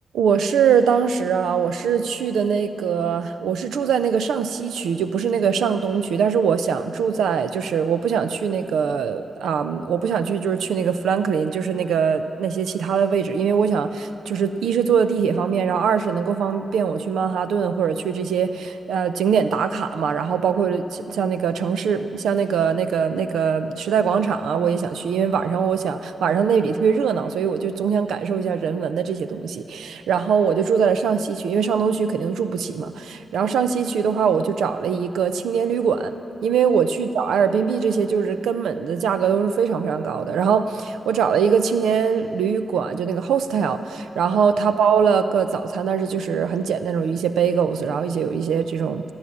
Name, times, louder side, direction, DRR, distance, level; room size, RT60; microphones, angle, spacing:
voice 1, 0.1-36.1 36.4-49.0, right 6 dB, 90° right, 10 dB, 0.5 m, -22 dB
15.0 x 8.9 x 8.5 m, 2.9 s
supercardioid pair, 50°, 0 cm